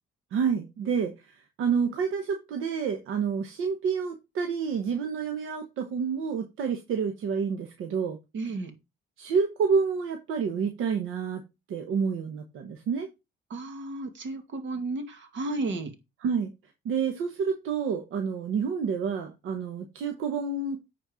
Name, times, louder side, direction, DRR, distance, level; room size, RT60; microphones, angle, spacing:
voice 1, 0.3-8.2 9.2-11.4 11.7-13.1 16.2-16.5 16.8-20.8, right 6 dB, 85° right, 1.2 m, -29 dB
voice 2, 8.3-8.7 13.5-15.9, right 2 dB, 70° right, 2.1 m, -33 dB
9.4 x 4.5 x 4.9 m
cardioid pair, 90°, 20 cm